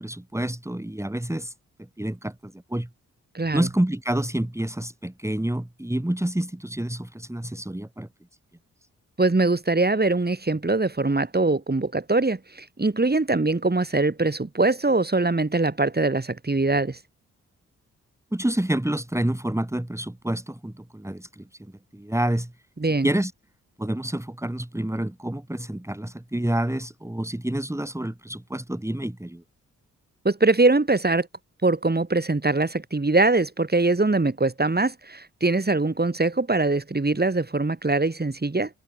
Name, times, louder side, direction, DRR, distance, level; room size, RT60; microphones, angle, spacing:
voice 1, 0.0-1.5 2.0-2.9 3.5-8.1 18.3-21.4 21.9-22.5 23.0-23.3 23.8-29.4, right 1 dB, 10° right, 3.5 m, -28 dB
voice 2, 3.3-3.7 9.2-17.0 22.8-23.1 30.2-31.3 31.6-38.7, right 3 dB, 30° right, 6.1 m, -22 dB
supercardioid pair, 45°, 34 cm